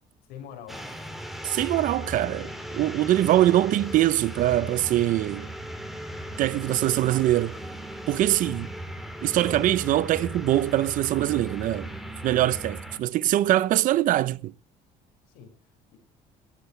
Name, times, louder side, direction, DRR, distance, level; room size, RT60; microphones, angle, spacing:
voice 1, 0.3-0.8 6.1-6.7 12.4-12.5 15.3-16.0, left 8 dB, 85° left, 6.1 m, -46 dB
sound 1, 0.7-13.0, right 1 dB, ahead, 2.6 m, -37 dB
voice 2, 1.4-5.5 6.4-7.5 8.1-8.7 9.2-11.9 12.2-14.5, right 14 dB, 60° right, 0.8 m, -23 dB
16.0 x 15.5 x 3.3 m
cardioid pair, 125°, 15 cm